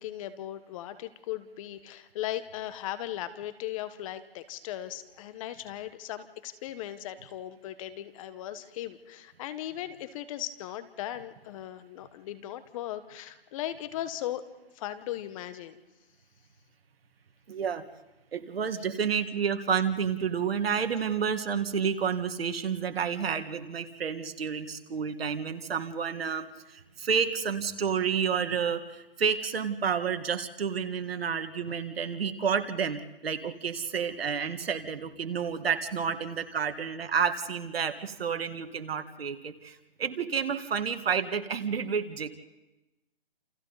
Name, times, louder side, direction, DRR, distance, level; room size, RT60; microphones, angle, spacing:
voice 1, 0.0-14.4 14.7-15.8, left 13 dB, 35° left, 12 dB, 1.3 m, -38 dB
voice 2, 17.5-17.8 18.3-42.3, right 7 dB, 75° right, 9 dB, 1.9 m, -30 dB
29.0 x 28.5 x 4.1 m, 1.0 s
hypercardioid pair, 145°, 30 cm